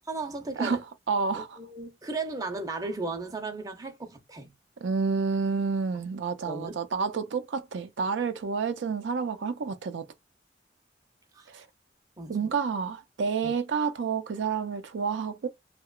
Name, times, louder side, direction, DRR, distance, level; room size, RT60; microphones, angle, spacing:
voice 1, 0.1-0.8 1.3-4.5 6.5-6.8 11.3-11.5 12.2-12.4 13.4-13.5, right 3 dB, 20° right, 0.5 m, -35 dB
voice 2, 1.1-1.6 4.8-10.1 11.5-11.7 12.3-15.5, right 5 dB, 90° right, 0.4 m, -29 dB
2.8 x 2.2 x 2.3 m
head